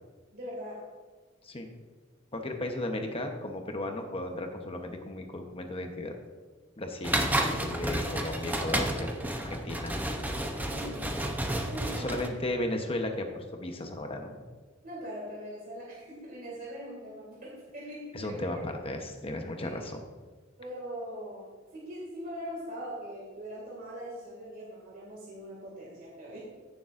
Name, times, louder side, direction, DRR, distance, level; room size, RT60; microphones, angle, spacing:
voice 1, 0.3-0.9 10.6-11.3 11.6-12.2 14.8-18.4 19.6-19.9 20.6-26.4, equal, 45° right, -5 dB, 2.3 m, -41 dB
voice 2, 2.3-6.1 6.8-9.9 12.0-14.4 18.1-20.0, left 1 dB, 30° left, 4 dB, 1.0 m, -35 dB
sound 1, 7.0-12.3, right 1 dB, 10° right, 0.7 m, -31 dB
15.0 x 6.9 x 2.6 m, 1.4 s
head